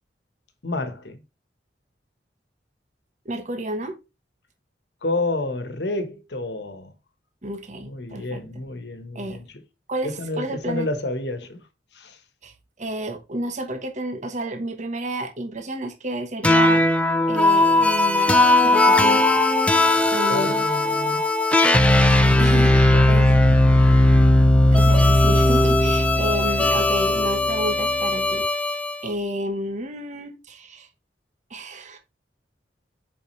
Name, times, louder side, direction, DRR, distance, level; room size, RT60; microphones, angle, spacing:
voice 1, 0.6-1.2 5.0-6.9 7.8-9.5 10.0-11.6 11.9-12.2 20.3-21.2 22.9-23.0 23.4-23.5, left 2 dB, 70° left, 1.3 m, -29 dB
voice 2, 3.2-4.0 7.4-8.4 9.1-9.4 9.9-10.9 12.4-12.5 12.8-16.8 17.3-19.2 20.1-20.7 22.4-23.4 24.7-30.9 31.5-32.0, right 1 dB, 45° right, 1.2 m, -31 dB
sound 1, 16.4-28.9, left 1 dB, 5° left, 0.7 m, -17 dB
7.5 x 5.2 x 3.2 m
head